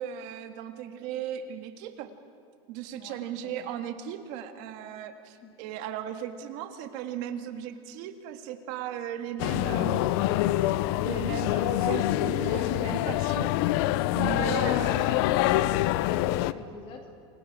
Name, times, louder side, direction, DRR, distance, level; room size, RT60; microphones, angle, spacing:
voice 1, 0.0-2.1 2.7-10.0 11.0-13.5 14.1-15.2, right 10 dB, 55° right, 7 dB, 1.8 m, -36 dB
voice 2, 3.0-3.7 5.4-5.5 14.6-14.9 16.0-17.1, left 7 dB, 35° left, 4 dB, 2.2 m, -43 dB
sound 1, 9.4-16.5, left 15 dB, 60° left, 0.6 m, -25 dB
28.5 x 21.0 x 5.0 m, 2.6 s
supercardioid pair, 150°, 15 cm